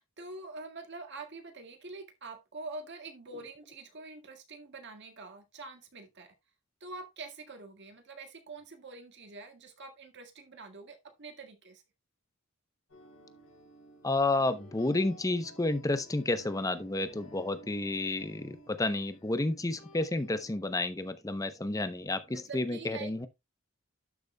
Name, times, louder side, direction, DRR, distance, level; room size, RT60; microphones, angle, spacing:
voice 1, 0.0-6.3 6.8-11.8 22.3-23.3, right 3 dB, 55° right, 1.8 m, -45 dB
sound 1, 12.9-20.5, equal, 90° left, 4.5 m, -54 dB
voice 2, 14.0-23.3, left 2 dB, 15° left, 0.6 m, -31 dB
12.0 x 6.8 x 2.2 m
head